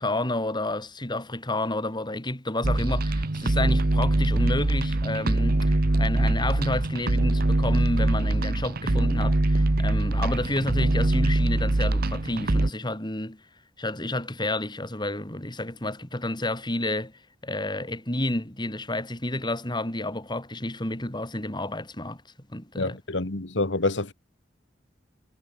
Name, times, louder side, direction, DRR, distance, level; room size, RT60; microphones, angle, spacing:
voice 1, 0.0-13.4 13.8-17.1 17.4-22.2 22.5-23.0, left 1 dB, 25° left, 4.1 m, -30 dB
sound 1, 2.6-12.7, right 2 dB, 55° right, 1.1 m, -23 dB
voice 2, 22.8-24.1, left 2 dB, 75° left, 1.9 m, -27 dB
head